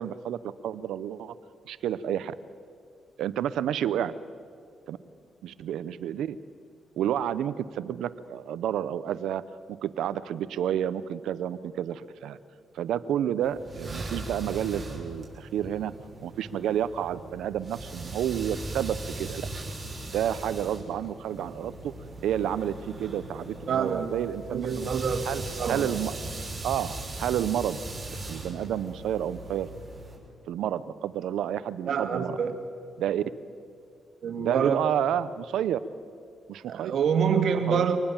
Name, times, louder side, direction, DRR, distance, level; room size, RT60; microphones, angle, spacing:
voice 1, 0.0-1.4 1.6-2.3 3.2-4.1 4.9-5.0 5.4-6.4 7.0-9.4 9.8-12.4 12.7-15.9 16.2-19.4 20.1-21.9 22.2-24.9 25.2-25.4 25.7-26.1 26.6-27.8 28.3-29.7 30.5-32.4 33.0-33.2 34.4-35.8 36.5-36.9 37.7-37.8, right 10 dB, 90° right, 15 dB, 0.7 m, -30 dB
sound 1, 13.4-30.2, right 2 dB, 20° right, 5.9 m, -39 dB
voice 2, 23.7-24.1 24.5-25.9 31.9-32.6 34.2-34.8 36.7-38.0, right 6 dB, 70° right, 6 dB, 2.0 m, -27 dB
24.5 x 19.0 x 7.3 m, 2.3 s
cardioid pair, 85°, 0 cm